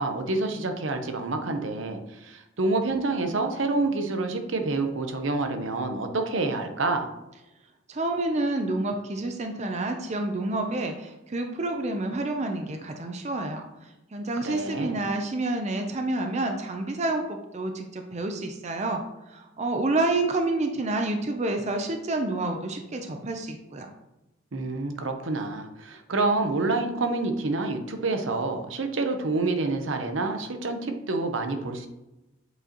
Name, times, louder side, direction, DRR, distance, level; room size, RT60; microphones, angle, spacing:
voice 1, 0.0-7.1 14.4-15.0 24.5-31.9, right 3 dB, 75° right, 5 dB, 0.8 m, -28 dB
voice 2, 7.9-13.6 14.1-19.0 19.3-23.9, right 2 dB, 35° right, 4 dB, 0.5 m, -28 dB
8.0 x 4.9 x 2.9 m, 0.96 s
head